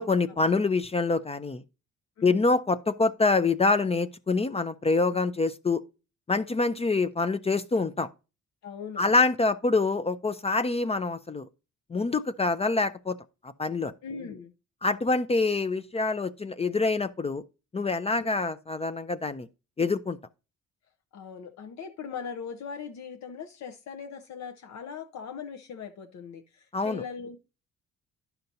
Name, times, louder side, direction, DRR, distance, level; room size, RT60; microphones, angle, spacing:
voice 1, 0.0-1.6 2.2-5.8 6.3-8.1 9.0-11.5 11.9-13.2 13.6-13.9 14.8-17.4 17.7-19.5 19.8-20.2 26.7-27.0, left 3 dB, 20° left, 0.4 m, -26 dB
voice 2, 8.6-9.2 14.0-14.5 18.1-18.3 21.1-27.4, left 6 dB, 65° left, 0.8 m, -40 dB
10.5 x 5.7 x 2.7 m
cardioid pair, 90°, 30 cm